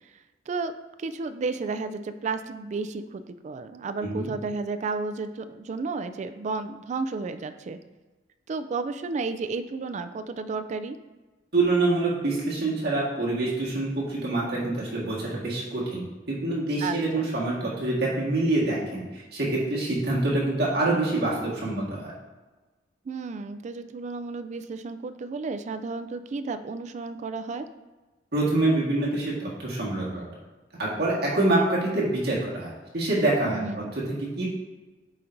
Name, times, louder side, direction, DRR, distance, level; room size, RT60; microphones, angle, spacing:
voice 1, 1.0-7.8 8.5-11.0 16.8-17.3 23.1-27.7 33.4-33.9, right 4 dB, 40° right, 10 dB, 0.3 m, -32 dB
voice 2, 11.5-22.1 28.3-30.2 30.8-33.6 34.4-34.5, right 2 dB, 65° right, -5 dB, 1.6 m, -26 dB
8.7 x 4.4 x 2.6 m, 1.2 s
head